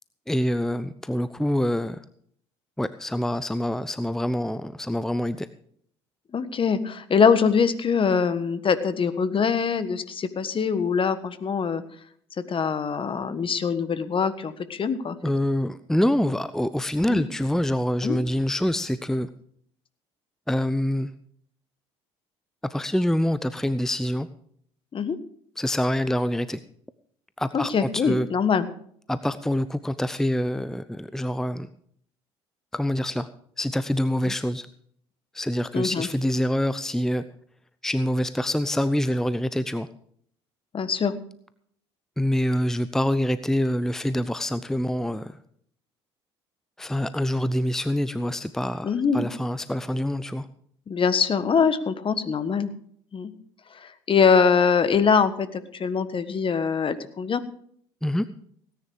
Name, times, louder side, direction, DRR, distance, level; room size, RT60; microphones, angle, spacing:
voice 1, 0.3-2.0 2.8-5.5 15.2-19.3 20.5-21.1 22.6-24.3 25.6-26.6 27.4-28.3 29.1-31.7 32.7-33.3 33.6-34.7 35.3-37.2 37.8-39.9 42.2-45.4 46.8-50.5 58.0-58.2, left 1 dB, 5° left, 13 dB, 0.7 m, -26 dB
voice 2, 6.3-11.8 12.5-15.1 17.1-17.2 18.0-18.2 24.9-25.2 27.5-28.7 35.7-36.1 40.7-41.1 48.8-49.3 50.9-52.7 53.1-53.3 53.8-57.4, left 6 dB, 35° left, 13 dB, 1.4 m, -23 dB
17.5 x 9.9 x 4.8 m, 0.63 s
hypercardioid pair, 60°, 14 cm